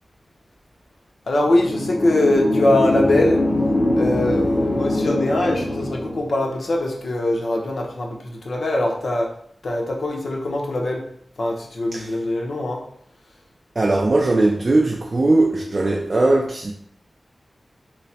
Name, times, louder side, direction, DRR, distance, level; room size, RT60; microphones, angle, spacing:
voice 1, 1.3-3.4 4.0-9.3 9.6-11.0 11.4-12.8, left 1 dB, 70° left, 0.7 m, -22 dB
sound 1, 1.4-6.4, left 1 dB, 40° left, 1.0 m, -22 dB
voice 2, 13.8-16.7, right 2 dB, 40° right, 0.4 m, -19 dB
3.1 x 2.0 x 4.1 m
wide cardioid pair, 115°, 0 cm